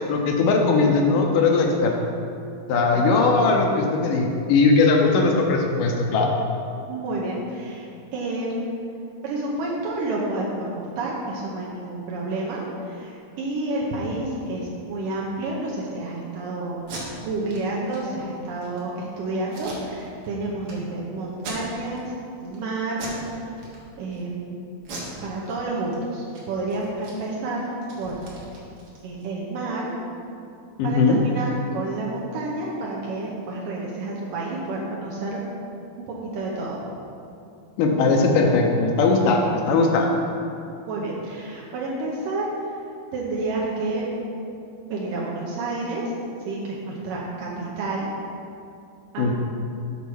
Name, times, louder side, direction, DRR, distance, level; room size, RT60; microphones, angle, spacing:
voice 1, 0.0-1.9 2.7-6.3 30.8-31.2 37.8-40.1 49.2-49.3, left 3 dB, 75° left, 1 dB, 2.1 m, -19 dB
voice 2, 2.7-3.3 6.9-8.8 9.2-16.8 17.2-22.1 22.4-23.5 24.0-24.7 25.2-27.7 28.0-28.4 29.0-29.9 30.8-35.4 36.0-36.8 40.9-42.8 43.1-44.1 44.8-46.0 46.5-48.1 49.1-49.3, right 2 dB, 75° right, -4 dB, 2.4 m, -30 dB
Packing tape duct tape, 16.8-17.0 17.5-17.6 17.9-18.0 18.4-18.8 19.5-20.3 20.6-20.7 21.3-22.0 22.4-22.6 22.9-23.2 23.6-24.2 24.8-25.9 26.2-26.4 26.7-29.3, right 2 dB, 60° right, 2.4 m, -40 dB
6.9 x 4.6 x 6.2 m, 2.5 s
omnidirectional pair, 4.1 m